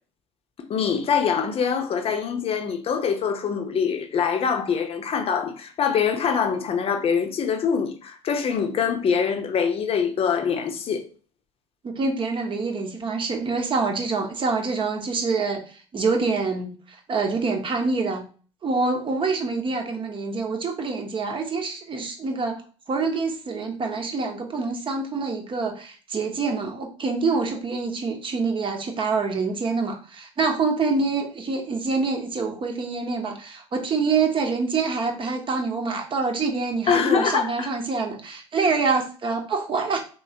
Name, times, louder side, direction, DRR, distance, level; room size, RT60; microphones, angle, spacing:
voice 1, 0.7-11.0 36.9-37.7, left 6 dB, 40° left, 0.7 m, -24 dB
voice 2, 11.8-18.3 18.6-22.6 22.9-40.0, right 4 dB, 35° right, 0.9 m, -26 dB
3.2 x 3.1 x 2.7 m
hypercardioid pair, 70°, 15 cm